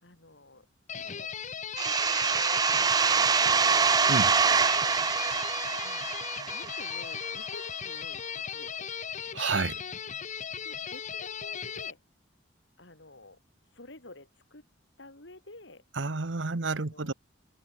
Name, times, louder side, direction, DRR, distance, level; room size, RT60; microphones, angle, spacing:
voice 1, 0.0-0.7 1.0-1.3 1.8-5.0 5.8-6.1 6.5-8.9 10.6-12.0 12.8-13.4 13.7-14.7 15.0-15.8 16.7-17.1, left 2 dB, 65° left, 3.9 m, -50 dB
sound 1, 0.9-11.9, left 8 dB, 40° left, 0.9 m, -37 dB
sound 2, 1.8-7.2, right 5 dB, 20° right, 0.4 m, -25 dB
voice 2, 9.3-9.8 16.0-17.1, right 3 dB, 70° right, 1.1 m, -30 dB
head